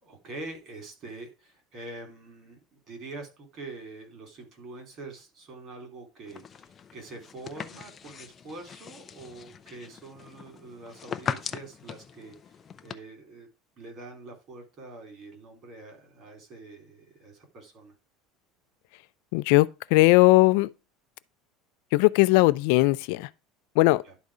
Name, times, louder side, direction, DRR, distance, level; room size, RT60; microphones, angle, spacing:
voice 1, 0.0-2.6 2.9-13.5 13.8-17.9 24.1-24.2, right 2 dB, 35° right, 3.3 m, -44 dB
sound 1, 6.3-12.9, left 7 dB, 20° left, 0.6 m, -40 dB
voice 2, 19.3-20.7 21.9-23.3 23.8-24.0, left 21 dB, 65° left, 0.5 m, -19 dB
11.5 x 4.1 x 4.9 m
cardioid pair, 170°, 0 cm